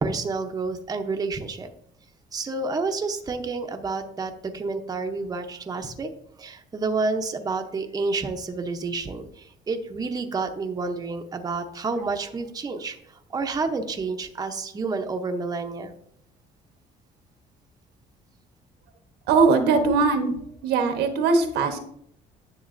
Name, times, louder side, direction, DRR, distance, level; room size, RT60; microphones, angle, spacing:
voice 1, 0.0-1.7 2.3-6.1 6.4-13.0 13.3-15.9, right 3 dB, 20° right, 5 dB, 0.7 m, -29 dB
voice 2, 19.3-20.3 20.6-21.8, right 4 dB, 85° right, 6 dB, 1.1 m, -20 dB
10.5 x 6.4 x 2.6 m, 0.71 s
cardioid pair, 110°, 17 cm